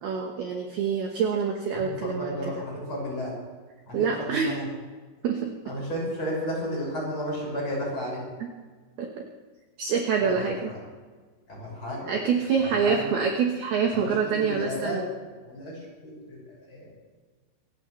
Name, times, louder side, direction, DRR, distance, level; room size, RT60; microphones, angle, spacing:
voice 1, 0.0-2.6 3.9-4.6 5.2-5.5 8.4-8.5 9.0-9.1 9.8-10.7 12.1-15.1, right 6 dB, 65° right, 1 dB, 2.7 m, -26 dB
voice 2, 1.7-3.4 3.9-4.7 5.6-8.3 10.2-10.8 11.5-12.1 12.6-13.1 13.9-15.1 15.4-16.9, equal, 25° left, -4 dB, 6.4 m, -33 dB
26.5 x 15.0 x 3.2 m, 1.4 s
omnidirectional pair, 5.8 m